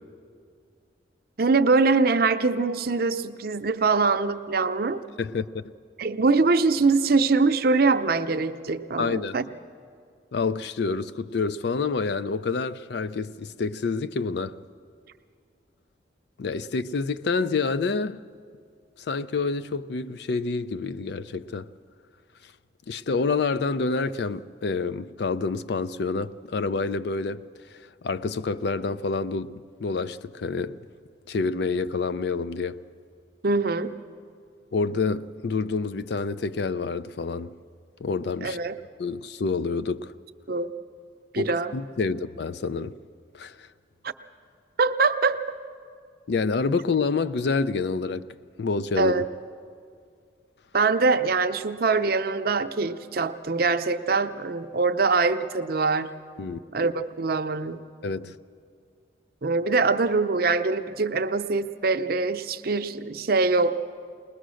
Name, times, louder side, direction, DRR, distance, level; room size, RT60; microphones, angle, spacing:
voice 1, 1.4-5.0 6.0-9.4 33.4-33.9 38.4-38.8 40.5-40.7 41.3-41.7 44.0-44.1 44.8-45.6 49.0-49.2 50.7-56.1 56.7-57.8 59.4-63.8, right 4 dB, 50° right, 0.6 m, -23 dB
voice 2, 5.2-5.6 9.0-9.4 10.3-14.6 16.4-18.2 19.0-21.7 22.9-27.4 27.7-27.8 28.0-30.8 31.3-32.8 34.7-37.5 38.0-38.6 39.0-40.1 41.4-42.9 43.3-43.7 46.3-48.3 48.6-49.2 56.4-56.6 58.0-58.4, left 4 dB, 60° left, 0.4 m, -28 dB
20.5 x 20.5 x 6.3 m
head